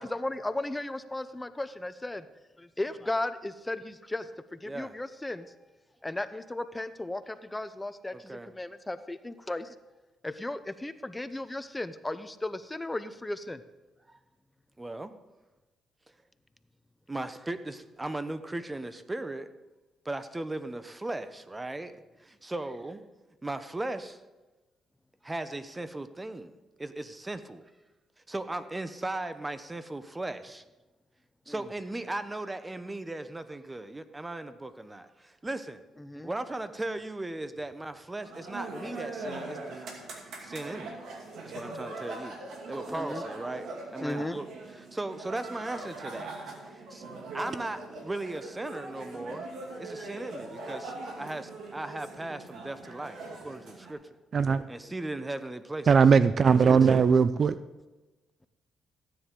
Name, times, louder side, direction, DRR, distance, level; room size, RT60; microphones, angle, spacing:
voice 1, 0.0-2.3 2.6-5.5 6.0-9.7 10.2-13.6 31.5-31.6 36.0-36.3 42.9-43.2 44.0-44.4 54.4-54.9 56.7-56.9, left 2 dB, 15° left, 12 dB, 0.6 m, -36 dB
voice 2, 8.1-8.5 14.1-14.2 14.8-15.1 17.1-19.5 20.0-23.0 23.4-24.2 25.2-26.5 26.8-27.6 28.3-30.6 31.5-35.8 36.2-39.8 40.4-41.0 41.4-42.4 42.7-43.7 43.9-44.5 44.8-46.3 46.7-47.0 47.3-49.5 49.8-54.0 54.7-55.9 56.6-57.0, right 2 dB, 15° right, 12 dB, 0.8 m, -37 dB
sound 1, 38.2-53.9, right 2 dB, 75° right, 2.4 m, -41 dB
voice 3, 54.3-54.6 55.9-57.6, right 6 dB, 45° right, 14 dB, 0.4 m, -20 dB
15.0 x 9.8 x 3.8 m, 1.1 s
cardioid pair, 90°, 0 cm